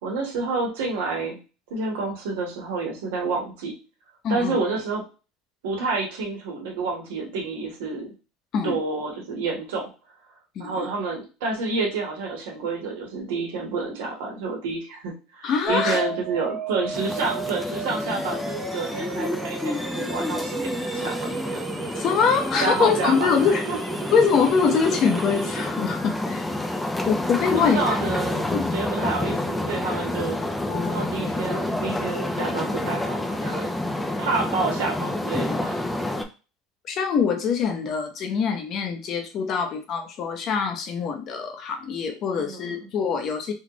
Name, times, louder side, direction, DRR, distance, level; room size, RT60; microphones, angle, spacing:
voice 1, 0.0-1.4 1.7-3.7 4.3-5.0 5.6-8.1 8.6-9.9 10.6-21.1 22.6-23.8 27.4-28.5 28.7-30.4 30.7-33.7 34.2-35.9 42.3-42.9, right 3 dB, 85° right, 0 dB, 1.2 m, -29 dB
voice 2, 4.2-4.6 8.5-8.8 10.6-10.9 15.4-16.0 22.0-23.6 24.1-26.5 27.1-27.8 28.5-28.7 30.7-31.1 36.9-43.5, left 6 dB, 45° left, 5 dB, 0.7 m, -24 dB
sound 1, 15.7-25.7, right 3 dB, 35° right, 0.7 m, -34 dB
sound 2, 16.9-36.2, left 1 dB, 10° left, 0.4 m, -29 dB
3.5 x 2.4 x 2.9 m, 0.33 s
supercardioid pair, 125°, 0 cm